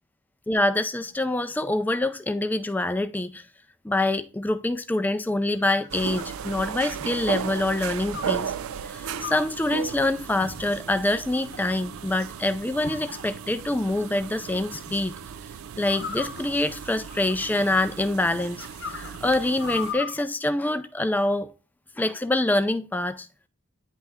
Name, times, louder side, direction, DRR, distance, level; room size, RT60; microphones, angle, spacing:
voice 1, 0.5-3.4 3.8-8.5 8.8-15.2 15.8-21.5 22.0-23.3, left 2 dB, 10° left, 0.4 m, -25 dB
sound 1, 5.3-7.1 8.1-8.5 9.2-9.6 10.4-10.9 11.5-12.1 12.8-13.6 14.7-15.0 15.8-17.9 18.4-20.2, left 5 dB, 55° left, 0.9 m, -39 dB
sound 2, 5.9-19.9, right 7 dB, 80° right, 0.4 m, -36 dB
9.2 x 3.3 x 3.5 m
head